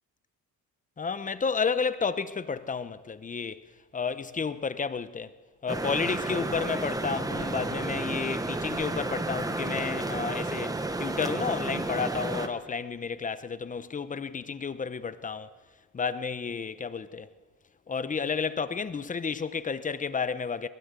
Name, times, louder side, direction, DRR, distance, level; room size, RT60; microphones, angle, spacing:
voice 1, 1.0-3.6 3.9-5.3 5.6-15.5 15.9-17.3 17.9-20.7, left 5 dB, 25° left, 0.9 m, -31 dB
sound 1, 5.7-12.5, right 2 dB, 10° right, 1.2 m, -32 dB
22.5 x 20.5 x 8.2 m
cardioid pair, 165°, 34 cm